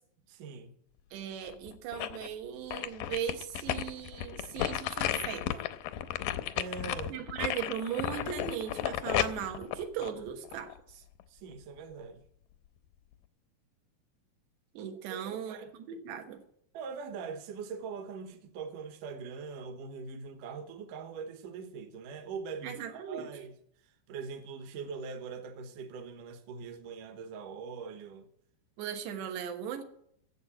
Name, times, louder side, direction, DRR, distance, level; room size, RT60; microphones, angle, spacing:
voice 1, 0.3-0.8 6.5-7.2 11.3-12.3 15.1-15.2 15.5-15.7 16.7-23.6 23.8-28.3, right 5 dB, 65° right, 2.4 m, -42 dB
voice 2, 1.1-5.6 7.1-11.0 14.7-15.6 15.9-16.4 22.6-23.3 28.8-29.8, right 9 dB, 90° right, 3.4 m, -38 dB
sound 1, 1.4-2.3 2.7-10.8 11.2-11.3, left 12 dB, 85° left, 1.9 m, -34 dB
11.0 x 7.7 x 8.8 m
omnidirectional pair, 4.7 m